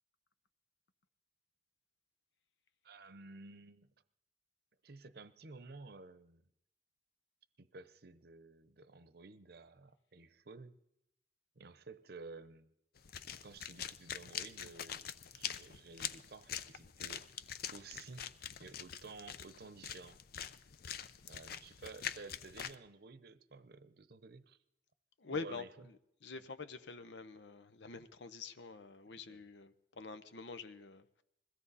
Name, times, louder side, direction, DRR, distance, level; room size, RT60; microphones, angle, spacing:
voice 1, 2.8-3.9 4.8-6.4 7.6-10.8 11.6-12.7 13.4-17.3 17.7-18.3 18.6-20.2 21.3-24.6 25.3-25.7 26.3-26.4 29.3-29.4, right 3 dB, 60° right, 0.8 m, -53 dB
sound 1, 13.0-22.7, left 9 dB, 60° left, 0.6 m, -45 dB
voice 2, 25.2-25.9 26.2-31.2, left 4 dB, 80° left, 0.8 m, -46 dB
21.5 x 16.0 x 4.1 m
head